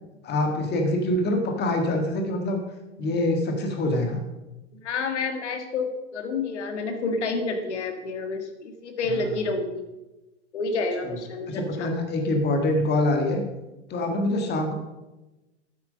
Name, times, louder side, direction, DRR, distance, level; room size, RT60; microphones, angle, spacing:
voice 1, 0.2-2.6 3.0-4.2 9.1-9.2 11.0-11.2 11.5-13.4 13.9-14.7, left 1 dB, 30° left, 3 dB, 1.8 m, -25 dB
voice 2, 4.8-9.9 10.5-11.9, left 3 dB, 70° left, 6 dB, 1.9 m, -29 dB
9.5 x 8.4 x 5.2 m, 1.0 s
hypercardioid pair, 100°, 36 cm